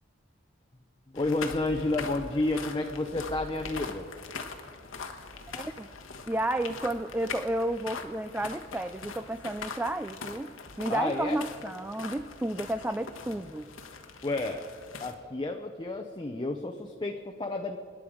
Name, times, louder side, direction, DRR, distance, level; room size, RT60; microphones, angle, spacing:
voice 1, 1.1-4.1 10.9-11.4 14.2-14.6 15.0-17.8, left 2 dB, 20° left, 4 dB, 0.7 m, -31 dB
sound 1, 1.2-15.1, left 4 dB, 85° left, 1.4 m, -42 dB
voice 2, 5.5-5.9 6.3-13.7, right 1 dB, 10° right, 10 dB, 0.3 m, -32 dB
26.0 x 10.5 x 5.1 m, 2.3 s
head